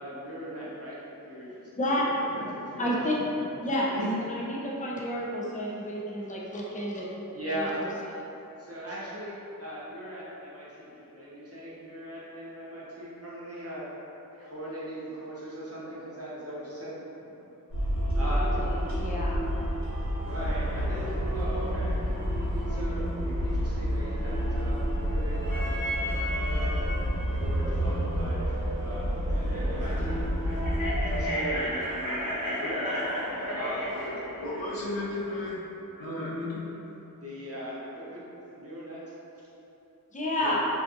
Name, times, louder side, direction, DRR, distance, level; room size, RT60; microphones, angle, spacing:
voice 1, 0.0-3.6 3.9-4.1 6.2-6.3 7.3-7.9 8.6-13.8 14.3-17.0 17.2-17.5 18.1-18.6 19.5-19.6 20.2-22.0 22.7-23.1 23.4-30.3 31.0-32.9 33.5-33.9 37.2-38.2 38.5-39.5, equal, 45° right, -8 dB, 0.6 m, -39 dB
voice 2, 2.8-3.2 3.6-3.9 4.2-7.1 7.5-7.9 18.6-18.7 19.0-19.4 40.1-40.6, left 1 dB, 25° left, -5 dB, 0.4 m, -30 dB
sound 1, 17.7-31.3, equal, 85° right, 1.0 m, -29 dB
sound 2, 20.2-35.5, equal, 65° left, 1.1 m, -36 dB
voice 3, 34.4-35.6 36.0-36.5 40.4-40.6, left 1 dB, 90° left, -7 dB, 0.7 m, -34 dB
2.5 x 2.4 x 2.6 m, 3.0 s
wide cardioid pair, 60°, 34 cm